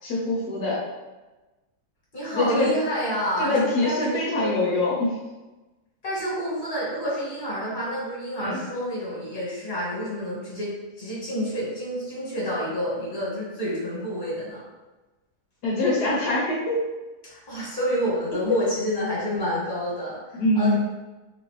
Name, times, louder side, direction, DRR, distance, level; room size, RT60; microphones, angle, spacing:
voice 1, 0.0-0.8 2.3-2.7 3.4-5.1 8.4-8.6 15.6-16.8 18.5-18.6 20.3-20.8, left 2 dB, 80° left, -5 dB, 1.3 m, -24 dB
voice 2, 2.1-4.8 6.0-14.6 17.2-20.8, equal, 30° left, -7 dB, 1.6 m, -29 dB
4.0 x 2.5 x 3.2 m, 1.1 s
omnidirectional pair, 1.7 m